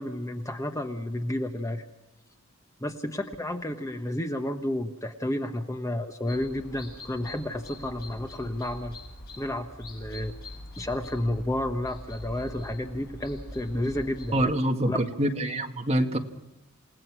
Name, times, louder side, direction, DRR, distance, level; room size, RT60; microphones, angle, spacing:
voice 1, 0.0-1.8 2.8-9.0 9.4-10.3 10.8-14.5 14.8-15.0, left 1 dB, 15° left, 6 dB, 1.2 m, -31 dB
sound 1, 6.3-14.5, left 1 dB, 45° left, 8.0 m, -43 dB
voice 2, 14.3-16.2, right 1 dB, 30° right, 3 dB, 2.0 m, -25 dB
29.0 x 18.0 x 6.2 m, 0.95 s
head